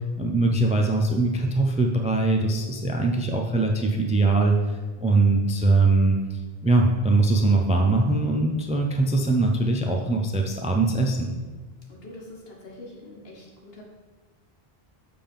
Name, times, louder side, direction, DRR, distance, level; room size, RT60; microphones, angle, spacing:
voice 1, 0.2-4.5 5.0-11.3, right 2 dB, 10° right, 2 dB, 0.4 m, -22 dB
voice 2, 11.9-13.8, left 1 dB, 70° left, -1 dB, 1.5 m, -44 dB
6.8 x 3.7 x 5.3 m, 1.3 s
omnidirectional pair, 1.0 m